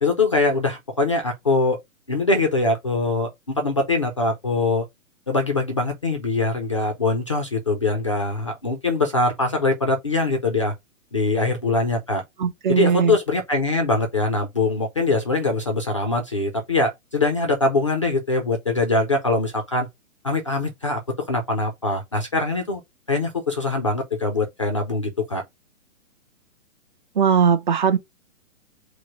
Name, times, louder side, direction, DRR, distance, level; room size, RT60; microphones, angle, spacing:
voice 1, 0.0-1.8 2.1-4.9 5.3-10.7 11.1-12.2 12.7-19.9 20.2-21.0 21.3-22.8 23.1-25.4, left 2 dB, 25° left, 0.3 m, -23 dB
voice 2, 12.4-13.2 27.1-28.0, right 7 dB, 35° right, 0.5 m, -19 dB
4.7 x 2.0 x 4.4 m
hypercardioid pair, 155°, 41 cm